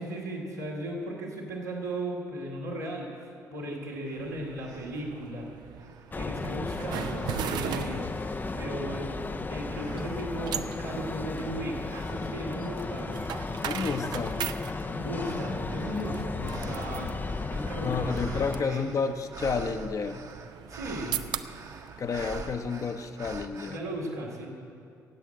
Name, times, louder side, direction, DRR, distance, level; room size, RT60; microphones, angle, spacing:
voice 1, 0.0-5.5 6.2-8.1 8.5-9.2 9.5-13.5 14.9-17.2 17.5-18.9 20.7-21.2 23.7-24.5, right 1 dB, 85° right, -6 dB, 2.4 m, -36 dB
sound 1, 4.1-4.2 4.6-5.2 5.8-6.7 7.1-8.0 8.6-9.1 9.7-10.5 11.0-23.8, right 4 dB, 40° right, 1.1 m, -47 dB
sound 2, 4.1-23.2, right 10 dB, 55° right, 0.5 m, -40 dB
sound 3, 6.1-18.6, left 3 dB, 20° left, 0.5 m, -35 dB
voice 2, 13.6-14.4 17.8-20.2 22.0-23.8, left 5 dB, 40° left, 7 dB, 0.9 m, -30 dB
16.0 x 8.3 x 7.7 m, 2.5 s
figure-of-eight pair, 45°, 9 cm